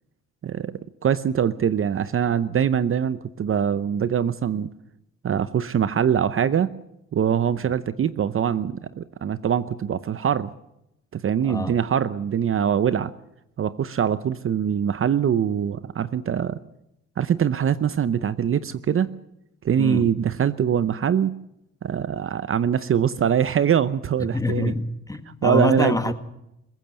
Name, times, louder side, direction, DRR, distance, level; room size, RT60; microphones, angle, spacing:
voice 1, 1.0-4.7 5.2-6.7 7.1-10.5 11.1-13.1 13.6-16.6 17.2-19.1 19.6-21.3 21.8-24.7 25.4-26.0, right 8 dB, 45° right, 0.8 m, -23 dB
voice 2, 11.4-11.7 19.8-20.1 24.3-26.1, left 2 dB, 10° left, 1.9 m, -25 dB
22.0 x 16.5 x 7.6 m
cardioid pair, 90°, 30 cm